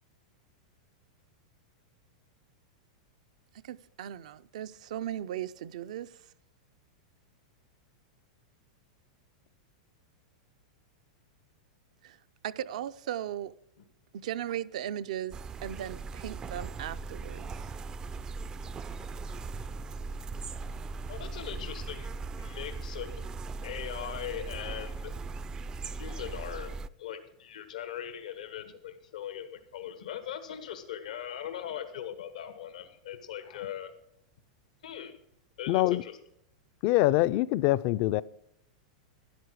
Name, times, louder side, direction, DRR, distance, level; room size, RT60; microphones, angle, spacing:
voice 1, 3.5-6.2 12.0-12.2 12.4-13.5 14.1-17.7, right 11 dB, 70° right, 0.5 m, -37 dB
sound 1, 15.3-26.9, right 3 dB, 20° right, 0.3 m, -39 dB
voice 2, 21.1-22.1 22.4-23.2 23.6-25.1 25.9-26.7 27.0-33.9 34.8-35.1 35.6-36.1, left 10 dB, 85° left, 1.2 m, -40 dB
voice 3, 35.7-36.0 36.8-38.2, left 16 dB, 45° left, 0.4 m, -24 dB
12.5 x 10.5 x 4.7 m
supercardioid pair, 135°, 4 cm